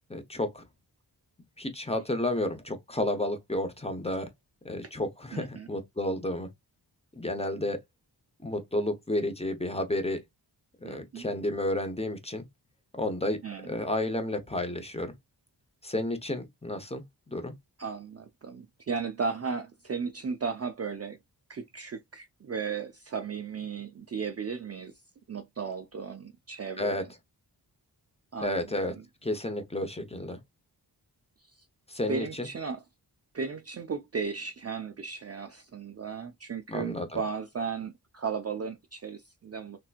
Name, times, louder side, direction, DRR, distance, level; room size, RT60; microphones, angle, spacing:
voice 1, 0.1-0.6 1.6-4.3 4.6-6.5 7.2-7.8 8.4-10.2 10.8-12.4 12.9-13.4 13.7-15.1 15.8-17.0 17.3-17.5 26.8-27.0 28.4-28.9 29.2-30.4 31.9-32.5 36.7-37.2, left 1 dB, 15° left, 0.8 m, -31 dB
voice 2, 5.3-5.7 10.8-11.3 13.4-13.7 17.8-21.2 21.5-24.9 25.3-26.9 28.3-28.6 28.8-29.0 32.1-32.8 33.3-39.9, right 5 dB, 40° right, 0.4 m, -35 dB
3.4 x 2.8 x 2.4 m
wide cardioid pair, 115°, 42 cm